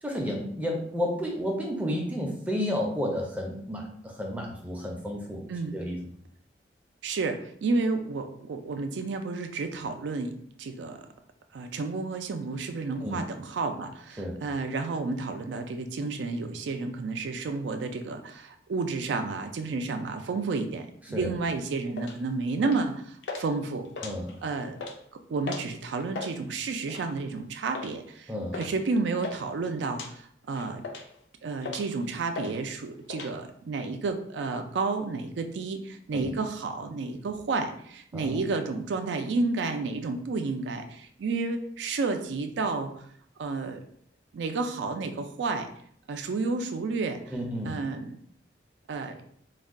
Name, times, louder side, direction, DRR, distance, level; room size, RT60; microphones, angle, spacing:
voice 1, 0.0-6.0 13.0-13.2 14.2-14.4 21.1-21.3 24.0-24.3 28.3-28.6 36.1-36.3 38.1-38.4 47.3-47.8, equal, 10° right, 0 dB, 0.4 m, -31 dB
voice 2, 7.0-10.3 10.6-11.0 11.5-23.9 24.4-24.8 25.3-30.8 31.4-42.9 43.4-43.8 44.3-45.7 46.1-47.2 47.6-48.2 48.9-49.2, right 3 dB, 80° right, 6 dB, 0.4 m, -31 dB
sound 1, 22.0-22.2 22.6-22.9 23.2-23.5 23.9-24.4 24.7-25.0 25.5-25.7 26.0-26.3 26.9-27.2 27.7-27.9 28.5-28.7 29.0-29.4 29.9-30.1 30.6-31.2 31.6-32.0 32.4-32.5 32.8-33.3, left 3 dB, 80° left, 0.4 m, -37 dB
2.3 x 2.2 x 3.5 m, 0.64 s
head